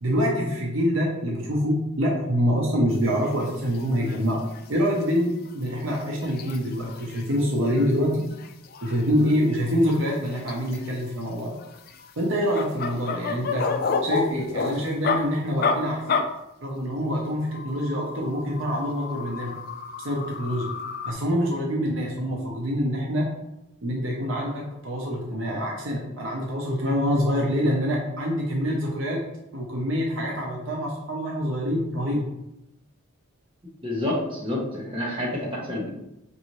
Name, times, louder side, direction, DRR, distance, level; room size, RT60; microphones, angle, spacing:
voice 1, 0.0-4.4 4.7-8.2 8.8-11.5 12.2-13.7 14.0-16.0 16.6-19.5 20.0-20.7 21.0-23.3 23.8-29.2 29.5-32.3, equal, 60° right, -1 dB, 0.7 m, -25 dB
sound 1, 3.2-3.4 3.7-3.8 4.1-4.2 4.5-4.6 5.0-5.1 5.5-7.4 7.7-7.9 8.1-9.9 10.3-11.0 11.6-15.2 15.6-15.8 16.1-16.2 17.4-21.1, left 4 dB, 45° left, 0.3 m, -30 dB
voice 2, 33.8-35.9, left 1 dB, 25° right, -4 dB, 1.1 m, -28 dB
5.4 x 2.7 x 3.1 m, 0.87 s
head